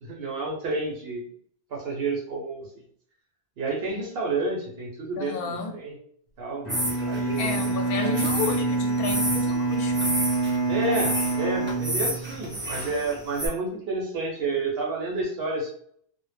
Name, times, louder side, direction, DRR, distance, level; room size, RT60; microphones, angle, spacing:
voice 1, 0.0-1.2 1.7-2.7 3.6-5.9 6.4-8.7 10.7-15.7, right 2 dB, 70° right, -2 dB, 0.8 m, -30 dB
voice 2, 5.2-5.7 7.4-10.1, left 4 dB, 65° left, 4 dB, 0.7 m, -31 dB
Bowed string instrument, 6.6-12.7, right 3 dB, 25° left, 0.7 m, -27 dB
sound 1, 6.7-13.5, equal, 20° right, 0.3 m, -31 dB
2.0 x 2.0 x 3.2 m, 0.62 s
omnidirectional pair, 1.1 m